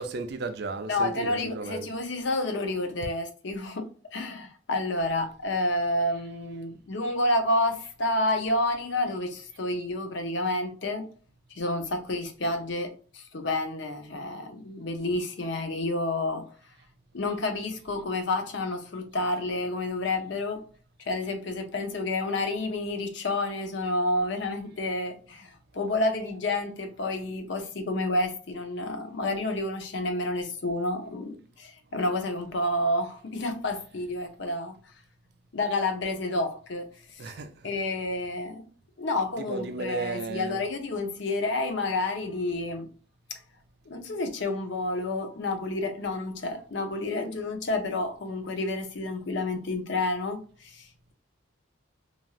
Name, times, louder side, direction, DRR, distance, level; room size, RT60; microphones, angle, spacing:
voice 1, 0.0-1.9 37.2-37.7 39.4-40.6, right 3 dB, 55° right, 0.4 m, -34 dB
voice 2, 0.9-11.1 11.5-16.5 17.1-20.7 21.0-34.8 35.5-37.2 37.6-38.6 39.0-42.9 43.3-43.4 43.9-51.1, left 2 dB, 60° left, 0.6 m, -29 dB
3.1 x 2.5 x 2.3 m
head